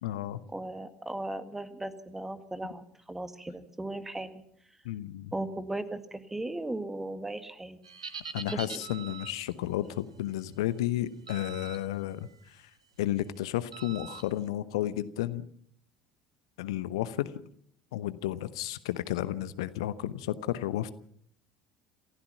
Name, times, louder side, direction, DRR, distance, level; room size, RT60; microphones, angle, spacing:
voice 1, 0.0-0.4 4.8-5.3 8.3-12.7 13.0-15.4 16.6-17.3 17.9-20.9, left 13 dB, 65° left, 15 dB, 0.9 m, -32 dB
voice 2, 0.5-4.4 5.3-7.8 8.5-8.8, right 2 dB, 10° right, 10 dB, 1.9 m, -37 dB
sound 1, 7.8-9.5 11.3-11.8 12.2-12.5 13.7-14.2, right 6 dB, 80° right, 1.5 m, -42 dB
28.0 x 15.5 x 5.9 m, 0.65 s
figure-of-eight pair, 65°, 3 cm